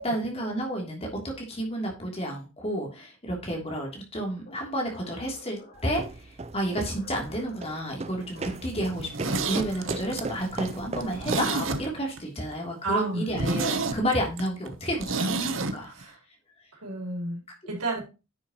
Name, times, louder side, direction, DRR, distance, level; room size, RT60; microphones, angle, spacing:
voice 1, 0.0-15.9, equal, 25° left, 0 dB, 3.0 m, -31 dB
sound 1, 4.4-6.1 6.8-7.7 8.3-8.8 9.2-10.2 10.9-11.9 13.0-13.7, left 3 dB, 45° left, 4.3 m, -50 dB
sound 2, 5.8-11.7, right 3 dB, 30° right, 0.4 m, -37 dB
Zipper (clothing), 8.9-12.2 12.5-12.6 13.0-13.1 13.3-15.8 16.0-16.1, right 3 dB, 60° right, 1.0 m, -30 dB
voice 2, 12.8-13.2 15.8-16.2 16.8-18.0, right 2 dB, 85° right, -1 dB, 4.1 m, -31 dB
10.0 x 7.2 x 3.0 m, 0.29 s
head